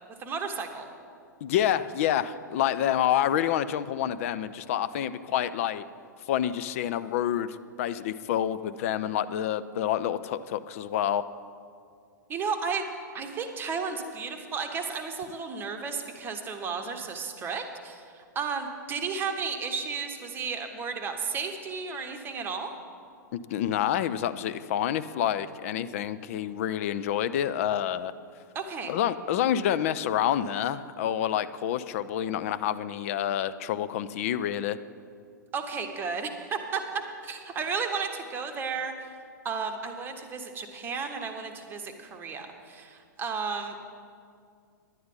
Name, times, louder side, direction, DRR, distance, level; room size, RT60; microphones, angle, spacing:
voice 1, 0.2-0.9 12.3-12.8 13.1-22.7 28.5-28.9 35.5-36.8 37.2-39.1 39.4-43.9, right 5 dB, 20° right, 5 dB, 1.1 m, -33 dB
voice 2, 1.4-5.8 6.3-11.2 23.3-28.1 28.9-34.8, left 10 dB, 45° left, 13 dB, 0.4 m, -28 dB
10.5 x 9.4 x 5.5 m, 2.3 s
figure-of-eight pair, 105°, 10 cm